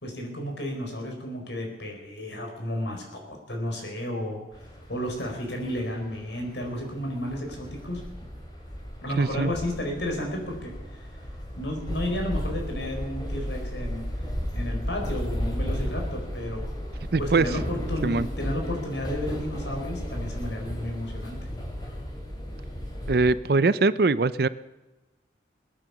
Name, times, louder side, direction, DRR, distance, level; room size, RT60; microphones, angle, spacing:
voice 1, 0.0-4.4 4.9-8.0 9.0-10.7 11.0-11.1 11.6-14.1 14.5-16.7 17.2-21.4, left 1 dB, 70° left, 2 dB, 4.6 m, -32 dB
sound 1, 4.5-23.3, equal, 20° left, 2.9 m, -34 dB
voice 2, 9.2-9.5 17.1-17.5 18.0-18.3 23.1-24.5, right 3 dB, 55° right, 17 dB, 0.5 m, -22 dB
21.0 x 9.1 x 7.0 m, 1.1 s
head